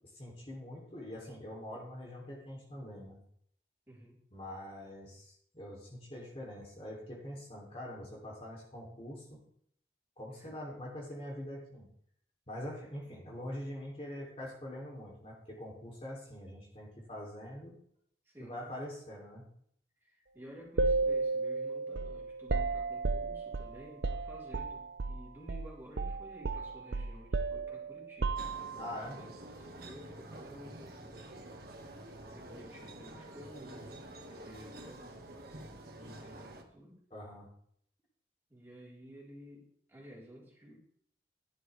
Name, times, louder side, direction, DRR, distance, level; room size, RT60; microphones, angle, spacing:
voice 1, 0.1-3.2 4.3-9.4 10.2-11.9 12.5-17.8 18.4-19.4 28.8-29.2 36.0-36.1 37.1-37.5, left 1 dB, 35° left, -2 dB, 3.0 m, -44 dB
voice 2, 3.9-4.2 10.3-10.5 12.7-12.9 18.3-18.7 20.0-28.4 29.2-31.5 32.3-35.2 36.0-37.0 38.5-40.8, equal, 15° right, -5 dB, 4.0 m, -53 dB
sound 1, 20.8-25.2 25.5-25.7 26.0-28.9, right 3 dB, 80° right, 0.6 m, -33 dB
sound 2, 28.4-36.6, right 1 dB, 60° right, 1.8 m, -48 dB
14.5 x 11.0 x 3.4 m, 0.66 s
head